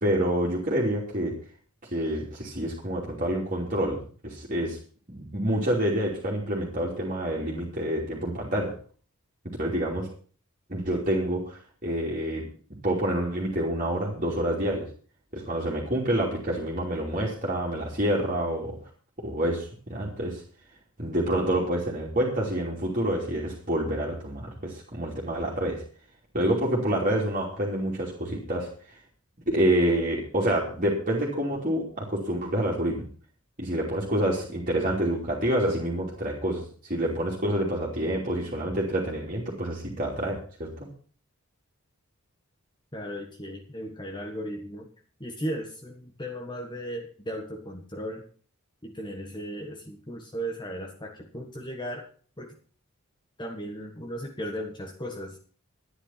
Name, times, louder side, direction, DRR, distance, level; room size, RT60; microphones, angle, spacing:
voice 1, 0.0-1.4 1.9-4.8 5.1-8.7 9.6-10.1 10.7-12.4 12.8-14.9 15.3-18.8 19.2-20.4 21.0-25.8 26.3-28.7 29.5-33.1 33.6-40.9, right 1 dB, 35° right, -3 dB, 3.0 m, -27 dB
voice 2, 42.9-44.9 45.2-48.2 48.8-52.1 52.4-52.5 53.4-55.4, equal, 20° left, 2 dB, 1.5 m, -36 dB
12.0 x 10.0 x 5.8 m, 0.41 s
head